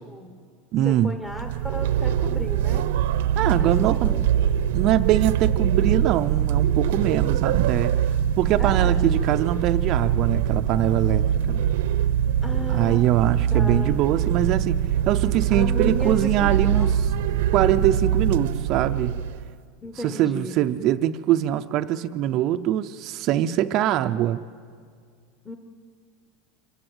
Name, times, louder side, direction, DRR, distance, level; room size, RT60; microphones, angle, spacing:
voice 1, 0.0-0.4 0.8-2.9 3.6-3.7 4.0-4.3 4.7-4.8 7.1-7.8 8.6-9.0 12.4-13.1 13.5-14.1 15.5-16.9 17.5-17.8 19.8-20.6 25.4-25.6, left 1 dB, 5° left, 4 dB, 1.1 m, -35 dB
voice 2, 0.7-1.1 3.4-4.2 4.7-7.9 8.4-11.7 12.7-14.8 15.1-16.9 17.5-19.2 20.0-24.4, right 12 dB, 35° right, 8 dB, 0.6 m, -23 dB
sound 1, 1.3-19.5, right 9 dB, 70° right, 0.8 m, -23 dB
25.5 x 22.0 x 8.0 m, 2.1 s
supercardioid pair, 170°, 0 cm